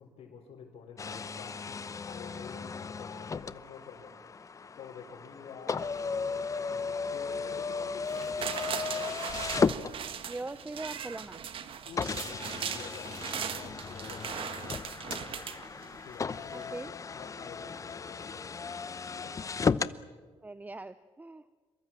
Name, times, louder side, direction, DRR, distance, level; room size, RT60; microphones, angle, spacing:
voice 1, 0.0-4.2 4.8-9.2 11.8-15.3 16.0-16.8 17.1-18.6 19.1-19.5, left 6 dB, 75° left, -3 dB, 4.9 m, -49 dB
sound 1, 1.0-10.5 11.2-11.3 12.0-20.0, left 5 dB, 30° left, 0.8 m, -35 dB
sound 2, 8.1-16.2 16.6-16.7, right 8 dB, 60° right, 1.6 m, -39 dB
voice 2, 10.2-11.4 16.5-16.9 20.4-21.5, right 2 dB, 15° right, 13 dB, 0.8 m, -41 dB
27.5 x 23.0 x 7.6 m, 1.5 s
cardioid pair, 95°, 10 cm